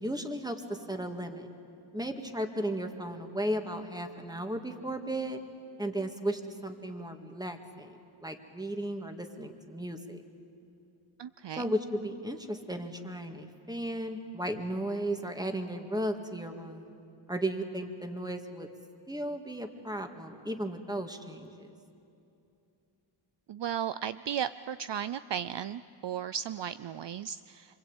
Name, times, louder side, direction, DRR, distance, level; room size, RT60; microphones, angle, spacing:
voice 1, 0.0-1.5 1.9-5.4 5.8-10.2 11.6-16.9 17.3-18.7 19.1-21.7, right 1 dB, 10° right, 5 dB, 2.0 m, -35 dB
voice 2, 11.2-11.7 23.5-27.8, right 9 dB, 60° right, 14 dB, 0.6 m, -35 dB
26.5 x 25.0 x 9.0 m, 2.7 s
wide cardioid pair, 105°, 50 cm